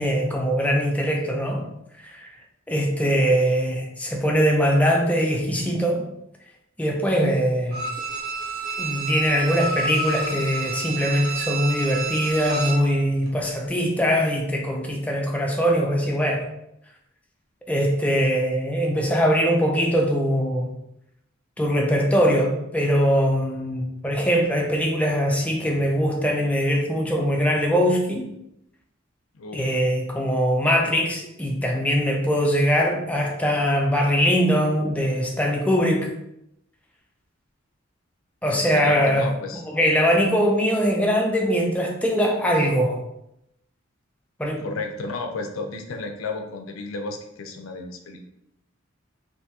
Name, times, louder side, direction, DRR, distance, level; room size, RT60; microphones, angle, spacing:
voice 1, 0.0-1.6 2.0-2.3 2.7-6.0 6.8-7.8 8.8-16.5 17.7-20.7 21.6-28.3 29.5-36.1 38.4-39.3 39.7-43.0 44.4-44.6, equal, 5° left, 0 dB, 0.5 m, -22 dB
Bowed string instrument, 7.7-12.9 13.3-13.4, right 3 dB, 50° right, 0.8 m, -30 dB
voice 2, 29.3-29.7 38.4-39.6 44.6-48.2, left 3 dB, 80° left, 4 dB, 0.5 m, -33 dB
3.4 x 2.7 x 2.8 m, 0.81 s
head